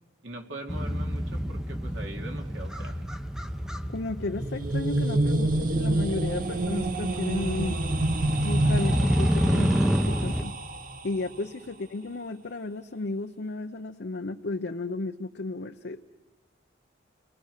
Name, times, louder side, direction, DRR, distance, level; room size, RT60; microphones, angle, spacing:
voice 1, 0.2-3.0, right 2 dB, 75° right, 2 dB, 2.7 m, -41 dB
Motorcycle, 0.7-10.4, equal, 5° right, 0.7 m, -29 dB
voice 2, 3.9-7.8 8.4-9.8 10.1-10.6 11.0-16.1, left 2 dB, 60° left, 5 dB, 0.7 m, -33 dB
sound 1, 4.2-11.2, right 1 dB, 45° right, 1.2 m, -28 dB
30.0 x 20.0 x 6.6 m, 1.2 s
head